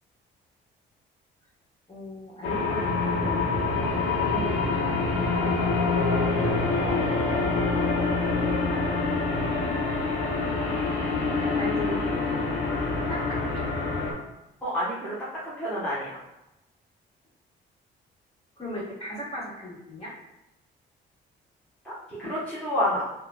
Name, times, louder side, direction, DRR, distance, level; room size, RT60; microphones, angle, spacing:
voice 1, 1.9-3.4 4.2-5.5 11.4-12.4 13.1-13.6 18.6-20.1, left 1 dB, 30° left, -7 dB, 1.4 m, -37 dB
sound 1, 2.4-14.1, left 3 dB, 90° left, 0.6 m, -26 dB
voice 2, 14.6-15.1 15.4-16.2 21.8-23.1, equal, 5° left, -9 dB, 1.0 m, -29 dB
3.5 x 2.2 x 2.2 m, 0.92 s
cardioid pair, 90°, 20 cm